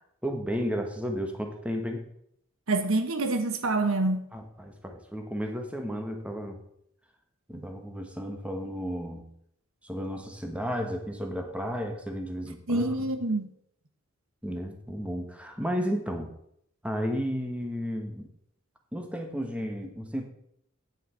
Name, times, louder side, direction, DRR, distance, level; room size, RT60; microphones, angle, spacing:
voice 1, 0.2-2.1 4.3-6.6 7.5-9.3 9.8-12.9 14.4-16.3 16.8-18.3 18.9-20.3, equal, 5° right, 4 dB, 1.1 m, -33 dB
voice 2, 2.7-4.3 7.6-7.7 12.7-13.5, right 2 dB, 70° right, 8 dB, 1.2 m, -26 dB
9.1 x 7.3 x 5.7 m, 0.71 s
head